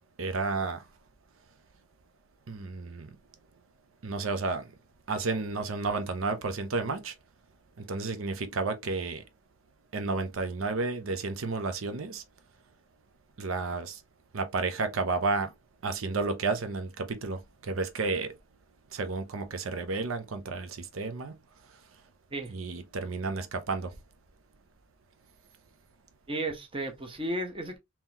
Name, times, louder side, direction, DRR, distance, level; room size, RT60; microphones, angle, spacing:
voice 1, 0.2-0.8 2.5-3.1 4.0-4.7 5.1-7.1 7.8-9.2 9.9-12.2 13.4-14.0 14.3-15.5 15.8-18.3 18.9-21.4 22.5-23.9, right 3 dB, 85° right, 0.6 m, -31 dB
voice 2, 26.3-27.8, right 1 dB, 25° right, 0.9 m, -33 dB
3.7 x 2.9 x 2.8 m
head